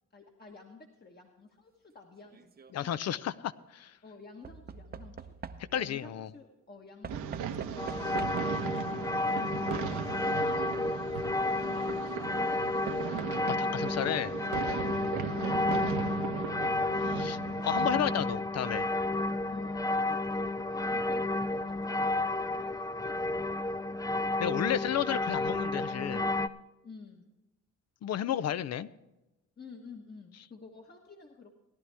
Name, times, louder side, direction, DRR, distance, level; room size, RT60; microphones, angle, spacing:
voice 1, 0.1-2.9 4.0-5.4 5.7-12.5 14.8-16.4 19.5-21.6 21.9-23.6 26.8-27.3 29.6-31.5, left 3 dB, 30° left, 1 dB, 1.4 m, -51 dB
Knock / Wood, 2.2-2.7 4.4-6.0 7.0-8.6 9.7-9.8 10.0-10.1, right 6 dB, 30° right, 0.7 m, -45 dB
voice 2, 2.7-3.9 5.7-6.3 13.5-14.3 17.0-17.4 17.6-18.9 24.4-26.3 28.0-28.9, left 10 dB, 60° left, 16 dB, 0.6 m, -32 dB
sound 1, 7.1-18.3, right 8 dB, 75° right, 1.0 m, -37 dB
sound 2, 7.8-26.5, left 2 dB, 10° left, 0.4 m, -31 dB
17.5 x 11.0 x 3.4 m, 0.99 s
cardioid pair, 90°, 30 cm